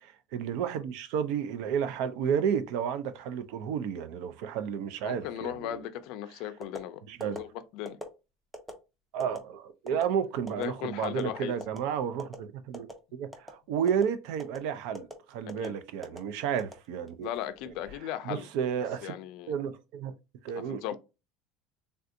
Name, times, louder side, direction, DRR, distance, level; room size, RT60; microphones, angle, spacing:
voice 1, 0.0-5.8 7.1-7.4 9.1-17.3 17.7-17.8 18.2-19.1 19.5-20.1 20.4-20.9, right 8 dB, 65° right, 0.4 m, -32 dB
voice 2, 5.0-8.0 10.6-11.5 15.6-15.7 17.2-18.5 19.0-19.5 20.6-20.9, left 11 dB, 60° left, 0.4 m, -37 dB
sound 1, 6.6-6.8 7.2-7.4 7.9-8.1 8.5-8.7 9.2-9.4 9.9-10.0 10.5-10.7 11.0-11.3 11.6-11.8 12.2-12.4 12.7-13.0 13.3-13.5 13.9-14.0 14.4-14.6 14.9-15.1 15.5-15.7 16.0-16.2 16.6-17.2 17.7-18.0, right 1 dB, 5° right, 0.5 m, -41 dB
3.3 x 2.5 x 2.6 m
cardioid pair, 165°, 0 cm